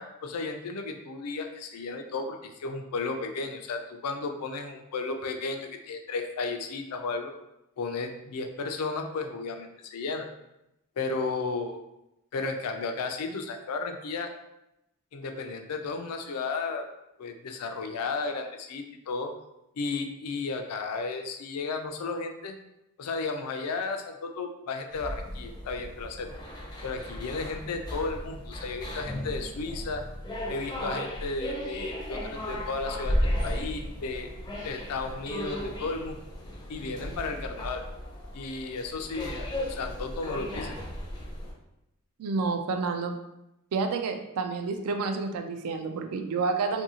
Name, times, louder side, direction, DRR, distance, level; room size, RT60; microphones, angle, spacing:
voice 1, 0.0-7.3 7.8-10.3 11.0-11.8 12.3-14.3 15.1-16.9 17.2-19.3 19.8-22.6 23.0-26.3 26.8-30.0 30.5-34.3 34.6-36.2 36.7-37.8 38.3-40.8, left 4 dB, 80° left, 5 dB, 0.4 m, -34 dB
sound 1, 24.9-41.5, equal, 20° left, 0.4 m, -35 dB
voice 2, 42.2-43.2 43.7-46.8, right 4 dB, 75° right, 6 dB, 0.4 m, -29 dB
2.6 x 2.6 x 2.7 m, 0.88 s
head